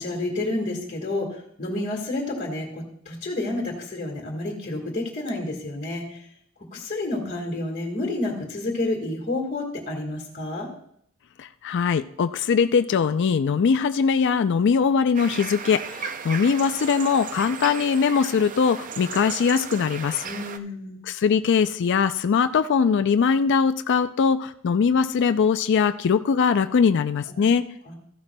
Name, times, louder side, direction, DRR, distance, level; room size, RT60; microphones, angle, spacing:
voice 1, 0.0-6.3 6.7-10.7 20.2-21.0 27.3-27.5 27.8-27.9, left 2 dB, 40° left, -2 dB, 1.7 m, -30 dB
voice 2, 11.4-20.2 21.1-27.6, left 6 dB, 55° left, 10 dB, 0.4 m, -21 dB
sound 1, 15.1-20.6, right 6 dB, 40° right, 0.5 m, -35 dB
14.5 x 11.0 x 2.2 m, 0.67 s
head